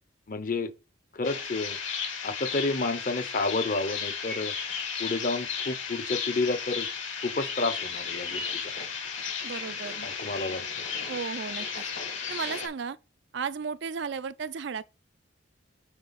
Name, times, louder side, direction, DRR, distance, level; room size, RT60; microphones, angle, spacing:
voice 1, 0.3-0.7 1.1-1.8 2.2-4.5 5.0-6.9 7.2-8.7 10.2-10.6, left 3 dB, 45° left, 0.8 m, -30 dB
sound 1, 1.2-12.7, left 6 dB, 75° left, 2.4 m, -34 dB
voice 2, 9.4-10.1 11.1-11.8 12.3-13.0 13.3-14.8, right 6 dB, 60° right, 0.4 m, -34 dB
9.3 x 3.3 x 5.7 m
head